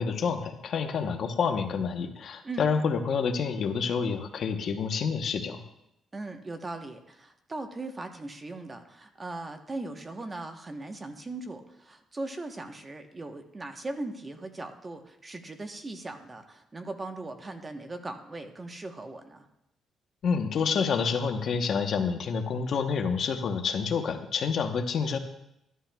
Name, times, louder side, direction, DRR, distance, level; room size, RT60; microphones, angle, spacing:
voice 1, 0.0-5.6 20.2-25.2, left 5 dB, 60° left, 6 dB, 0.9 m, -28 dB
voice 2, 6.1-19.5, right 2 dB, 25° right, 6 dB, 1.0 m, -39 dB
13.5 x 11.0 x 2.3 m, 0.83 s
cardioid pair, 100°, 0 cm